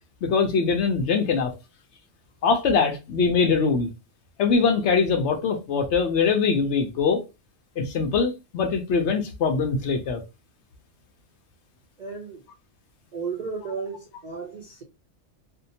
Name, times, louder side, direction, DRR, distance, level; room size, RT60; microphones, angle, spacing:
voice 1, 0.2-1.5 2.4-3.9 4.4-7.2 7.8-10.2, left 5 dB, 65° left, 0.8 m, -22 dB
voice 2, 12.0-12.4 13.1-14.8, right 5 dB, 60° right, 0.4 m, -34 dB
2.7 x 2.1 x 2.6 m
omnidirectional pair, 1.3 m